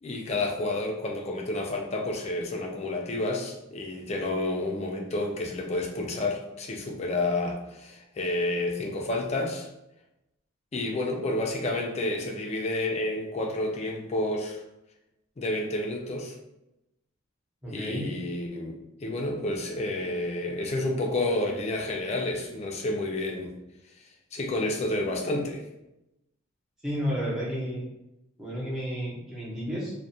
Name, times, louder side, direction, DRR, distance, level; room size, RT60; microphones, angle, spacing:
voice 1, 0.0-9.7 10.7-14.6 15.4-16.4 17.7-23.6 24.0-25.6, left 2 dB, 30° left, 1 dB, 0.3 m, -30 dB
voice 2, 17.6-18.0 26.8-27.8 28.4-29.9, equal, ahead, -8 dB, 0.7 m, -31 dB
2.3 x 2.1 x 2.7 m, 0.89 s
head